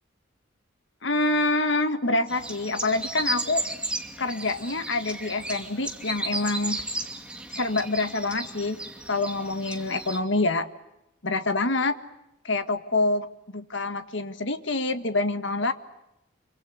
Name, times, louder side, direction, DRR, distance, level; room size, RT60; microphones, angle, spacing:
voice 1, 1.0-3.6 4.2-6.8 7.5-8.8 9.1-10.7 11.2-12.0 12.4-13.3 13.5-15.7, left 2 dB, 70° left, 10 dB, 1.8 m, -26 dB
sound 1, 2.3-10.2, right 2 dB, 5° right, 2.6 m, -34 dB
26.5 x 25.0 x 8.1 m, 0.90 s
head